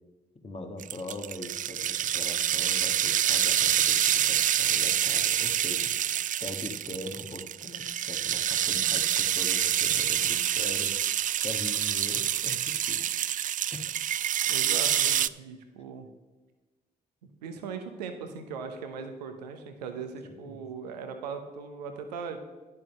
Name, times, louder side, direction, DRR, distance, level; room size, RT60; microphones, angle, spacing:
voice 1, 0.4-5.9 6.4-11.0 11.4-13.0 13.7-13.9 15.4-15.5 20.2-20.6, left 2 dB, 30° left, 5 dB, 1.6 m, -41 dB
sound 1, 0.8-15.3, right 10 dB, 40° right, 0.4 m, -27 dB
voice 2, 14.5-16.1 17.4-22.4, right 5 dB, 85° right, 7 dB, 0.9 m, -39 dB
10.5 x 6.7 x 5.4 m, 1.2 s
hypercardioid pair, 40°, 21 cm